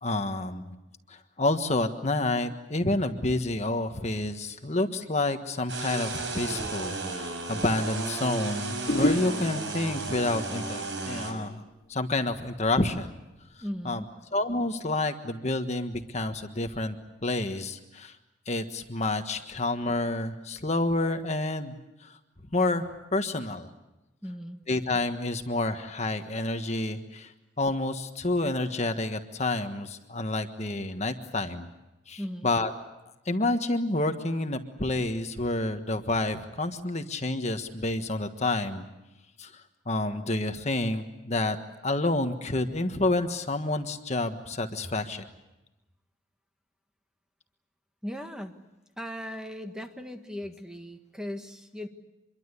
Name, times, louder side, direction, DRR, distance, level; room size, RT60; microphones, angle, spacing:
voice 1, 0.0-0.8 1.4-11.6 11.9-13.1 13.8-14.0 14.3-17.0 17.2-18.1 18.5-21.7 22.5-23.7 24.7-27.3 27.6-31.7 32.1-32.7 33.3-38.8 39.4-39.5 39.9-41.6 41.8-45.2, left 2 dB, 40° left, 7 dB, 1.5 m, -29 dB
sound 1, 5.7-11.3, right 3 dB, 80° right, 6.0 m, -34 dB
sound 2, 7.4-7.5 8.9-12.0 12.3-12.7, left 1 dB, 55° left, 3.5 m, -32 dB
voice 2, 13.6-14.2 24.2-24.6 32.2-32.5 48.0-48.6 49.0-51.9, equal, 5° right, 5 dB, 1.6 m, -38 dB
26.0 x 23.0 x 8.3 m, 0.97 s
head